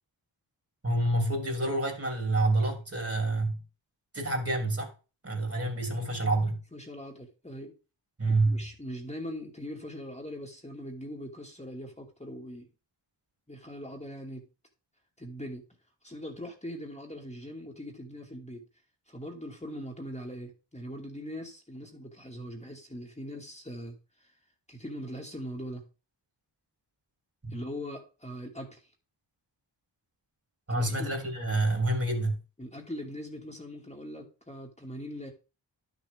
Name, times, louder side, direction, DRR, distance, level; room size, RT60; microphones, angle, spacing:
voice 1, 0.8-3.6 4.1-4.9 5.2-6.6 8.2-8.6 27.4-27.5 30.7-32.4, right 2 dB, 30° right, 3.3 m, -28 dB
voice 2, 6.7-7.7 8.5-12.7 13.5-14.4 15.2-15.6 16.0-18.6 19.1-24.3 24.7-25.8 27.5-28.9 30.7-31.2 32.6-35.3, equal, 15° left, 2.4 m, -41 dB
11.0 x 6.8 x 3.7 m
cardioid pair, 50°, 45 cm